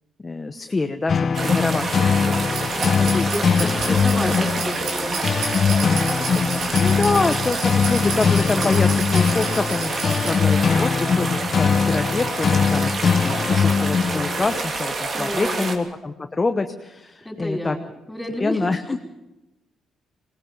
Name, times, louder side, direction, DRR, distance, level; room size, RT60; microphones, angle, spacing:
voice 1, 0.2-3.3 3.6-4.0 4.2-4.4 6.8-17.8 18.4-19.0, left 3 dB, 25° left, 6 dB, 1.0 m, -26 dB
sound 1, 1.1-14.6, left 6 dB, 50° left, 0.6 m, -21 dB
sound 2, 1.3-15.7, right 3 dB, 50° right, 2.7 m, -28 dB
sound 3, 2.3-10.3, right 5 dB, 85° right, 4.6 m, -33 dB
voice 2, 2.5-3.0 3.3-6.9 15.1-15.9 17.2-19.0, left 1 dB, 10° left, 2 dB, 5.3 m, -32 dB
21.0 x 18.5 x 7.1 m, 0.97 s
cardioid pair, 90°, 0 cm